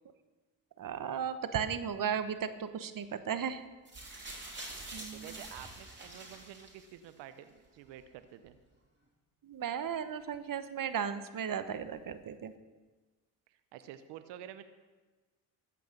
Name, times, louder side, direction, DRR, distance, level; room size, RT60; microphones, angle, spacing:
voice 1, 0.8-3.6 4.1-4.2 4.9-5.4 9.4-12.5, right 7 dB, 50° right, 11 dB, 1.1 m, -35 dB
sound 1, 3.9-7.1 8.0-8.1, right 2 dB, 25° right, 3.8 m, -46 dB
voice 2, 4.9-8.6 13.5-14.6, right 11 dB, 80° right, 11 dB, 0.8 m, -50 dB
14.5 x 5.9 x 6.6 m, 1.3 s
supercardioid pair, 60°, 42 cm